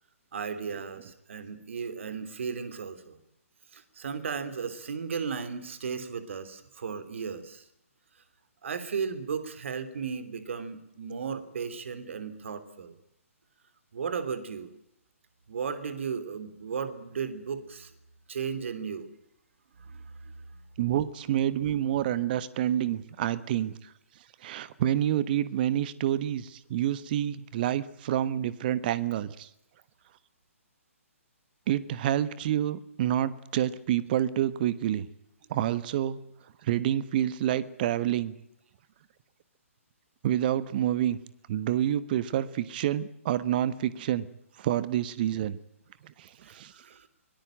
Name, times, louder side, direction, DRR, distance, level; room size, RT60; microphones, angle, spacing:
voice 1, 0.3-3.2 3.7-7.6 8.6-12.9 13.9-14.7 15.5-17.9 18.3-19.1 19.8-20.6 46.4-47.1, right 6 dB, 60° right, 12 dB, 3.2 m, -35 dB
voice 2, 20.8-23.7 24.4-29.5 31.7-35.1 35.5-36.2 36.6-38.3 40.2-41.2 41.5-44.3 44.6-45.6 46.0-46.7, right 11 dB, 40° right, 16 dB, 1.3 m, -28 dB
23.5 x 18.5 x 9.0 m, 0.82 s
figure-of-eight pair, 130°, 8 cm